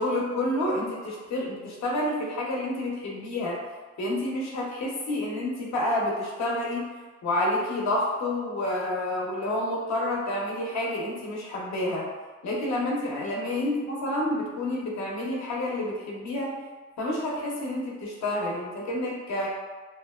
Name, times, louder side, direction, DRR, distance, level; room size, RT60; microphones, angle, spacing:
voice 1, 0.0-3.6 4.0-6.9 7.2-12.1 12.4-16.6 17.0-19.5, left 1 dB, 65° left, -2 dB, 0.7 m, -29 dB
2.7 x 2.1 x 2.3 m, 1.4 s
cardioid pair, 90°, 30 cm